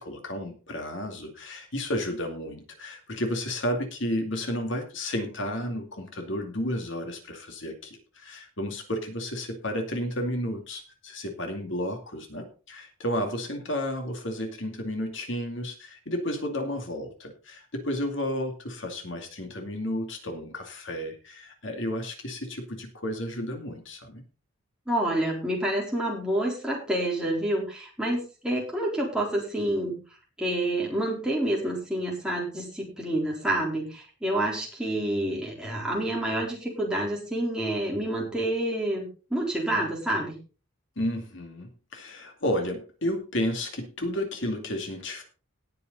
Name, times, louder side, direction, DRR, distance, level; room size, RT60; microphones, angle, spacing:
voice 1, 0.0-24.2 41.0-45.2, equal, 60° left, 4 dB, 2.4 m, -32 dB
voice 2, 24.9-30.0 30.4-40.4, right 1 dB, 5° right, -3 dB, 4.0 m, -28 dB
18.5 x 6.8 x 4.0 m, 0.35 s
head